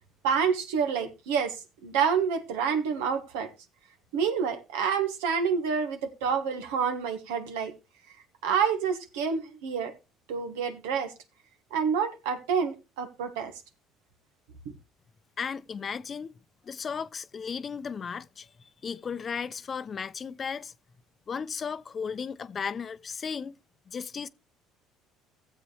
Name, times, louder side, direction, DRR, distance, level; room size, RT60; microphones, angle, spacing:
voice 1, 0.2-3.5 4.1-7.7 8.4-9.9 10.3-11.1 11.7-13.5 14.6-14.7, right 6 dB, 85° right, 1.4 m, -28 dB
voice 2, 15.4-16.4 16.6-20.7 21.3-23.6 23.9-24.3, left 6 dB, 40° left, 0.6 m, -35 dB
15.5 x 7.4 x 3.2 m
supercardioid pair, 75°, 0 cm